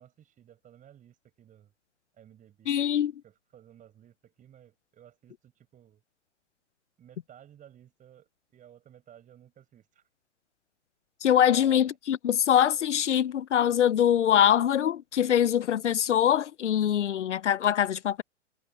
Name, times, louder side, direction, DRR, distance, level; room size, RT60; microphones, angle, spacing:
voice 1, 0.0-1.7 2.1-2.7 3.2-6.0 7.0-10.0 11.5-12.0, right 10 dB, 20° right, 6.9 m, -55 dB
voice 2, 2.7-3.1 11.2-18.2, left 10 dB, 80° left, 0.7 m, -23 dB
hypercardioid pair, 120°, 35 cm